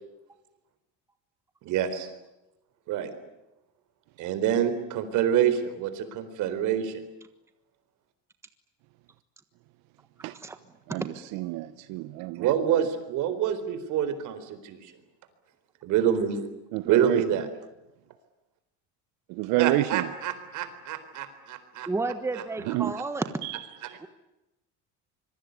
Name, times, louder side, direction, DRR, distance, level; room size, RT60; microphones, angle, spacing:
voice 1, 1.6-2.1 2.9-3.1 4.2-6.9 12.4-14.9 15.8-16.4 16.8-17.5 19.6-21.9, right 9 dB, 60° right, 11 dB, 4.2 m, -26 dB
voice 2, 10.9-12.9 16.7-17.2 19.3-20.1 22.7-23.0 23.4-24.0, right 17 dB, 80° right, 13 dB, 1.1 m, -29 dB
voice 3, 21.9-23.3 24.0-24.1, right 3 dB, 10° right, 10 dB, 1.3 m, -31 dB
25.5 x 23.0 x 9.6 m, 0.96 s
cardioid pair, 160°, 34 cm